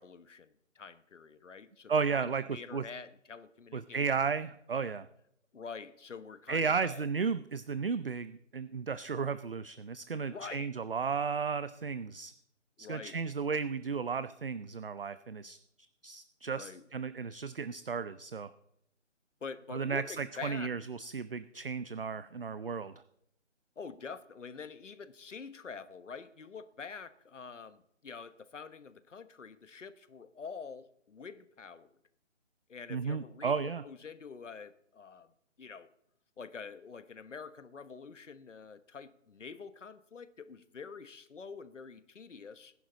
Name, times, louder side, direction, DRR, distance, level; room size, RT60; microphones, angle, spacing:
voice 1, 0.0-4.1 5.5-7.0 10.2-10.7 12.8-13.2 16.4-16.8 19.4-20.7 23.8-31.9 32.7-35.3 35.6-35.9 36.4-42.7, left 5 dB, 70° left, 12 dB, 1.3 m, -46 dB
voice 2, 1.9-2.8 3.7-5.1 6.5-12.3 12.8-15.6 16.0-18.5 19.7-22.9 32.9-33.8, right 5 dB, 50° right, 14 dB, 0.5 m, -34 dB
19.5 x 10.5 x 3.9 m, 0.75 s
hypercardioid pair, 170°, 38 cm